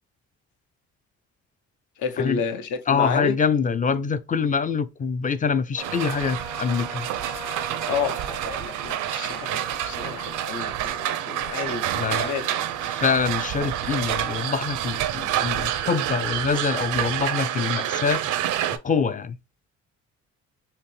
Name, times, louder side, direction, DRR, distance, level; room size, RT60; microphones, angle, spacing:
voice 1, 2.0-3.4 7.9-12.6, left 6 dB, 75° left, 0.8 m, -31 dB
voice 2, 2.9-7.1 11.9-12.3 12.8-18.4 18.8-19.4, left 5 dB, 25° left, 0.4 m, -25 dB
Trumpet, 5.7-15.1, right 1 dB, 55° left, 2.0 m, -43 dB
sound 1, 5.8-18.8, right 12 dB, 85° right, 0.6 m, -28 dB
5.6 x 2.1 x 3.1 m
cardioid pair, 90°, 30 cm